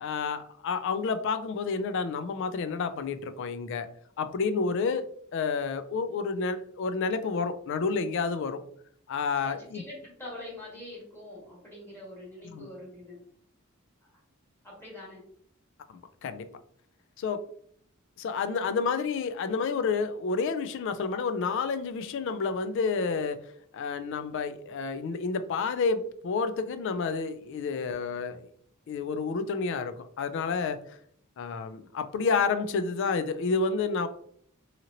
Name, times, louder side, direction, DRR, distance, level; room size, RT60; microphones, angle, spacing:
voice 1, 0.0-3.9 4.2-8.6 9.1-9.8 12.5-12.7 15.9-16.5 17.2-17.4 18.2-28.5 28.9-31.0 31.4-34.1, left 4 dB, 60° left, 11 dB, 0.3 m, -30 dB
voice 2, 9.4-13.2 14.6-15.2, left 1 dB, 10° left, -5 dB, 1.3 m, -44 dB
2.8 x 2.8 x 2.5 m, 0.64 s
head